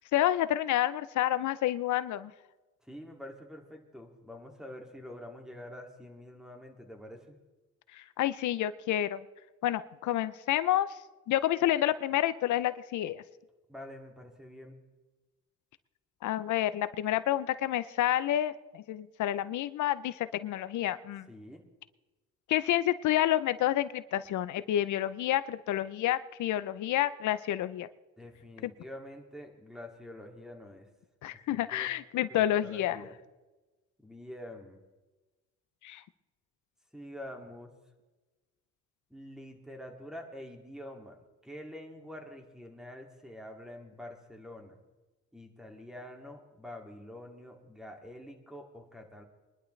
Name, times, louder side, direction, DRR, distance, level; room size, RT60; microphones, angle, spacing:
voice 1, 0.1-2.3 7.9-9.2 9.6-11.0 11.3-13.2 16.2-21.3 22.5-27.9 28.6-28.7 31.2-33.0 35.8-36.0, left 13 dB, 75° left, 15 dB, 0.6 m, -29 dB
voice 2, 2.8-7.4 13.7-14.8 21.3-21.6 28.2-30.9 31.3-31.9 32.3-33.2 34.0-34.8 36.9-37.7 39.1-44.8 45.3-49.2, left 1 dB, ahead, 2 dB, 2.4 m, -46 dB
22.5 x 11.5 x 3.3 m, 1.2 s
cardioid pair, 90°, 30 cm